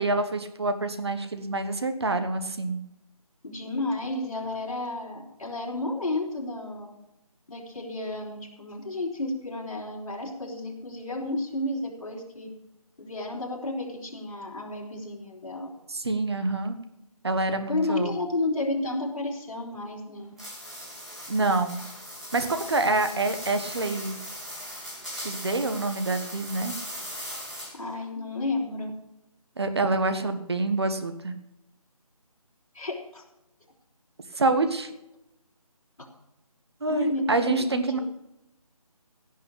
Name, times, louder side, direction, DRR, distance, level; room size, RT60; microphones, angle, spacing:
voice 1, 0.0-2.8 15.9-16.8 17.2-18.2 21.3-21.8 22.3-24.2 25.2-26.7 29.6-31.3 34.3-34.9 36.8-38.0, right 2 dB, 45° right, 8 dB, 1.5 m, -26 dB
voice 2, 3.4-6.9 7.5-12.5 13.0-15.7 17.7-20.3 27.7-28.9 32.7-33.2 36.9-38.0, left 2 dB, 60° left, -3 dB, 4.5 m, -31 dB
sound 1, 20.4-27.9, equal, ahead, 1.3 m, -39 dB
16.5 x 5.6 x 8.5 m, 0.86 s
figure-of-eight pair, 175°, 19 cm